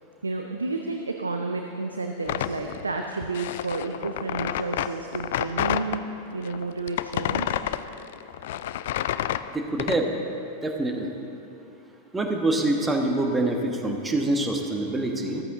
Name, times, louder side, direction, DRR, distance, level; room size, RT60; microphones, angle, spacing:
voice 1, 0.2-6.0 6.3-7.6, right 3 dB, 75° right, 4 dB, 0.6 m, -31 dB
sound 1, 2.2-6.0 6.4-10.0, left 12 dB, 55° left, 0.3 m, -29 dB
voice 2, 9.5-10.1 10.6-11.1 12.1-15.4, right 2 dB, 10° right, 2 dB, 1.3 m, -25 dB
14.0 x 13.5 x 3.8 m, 2.9 s
figure-of-eight pair, 90°, 0 cm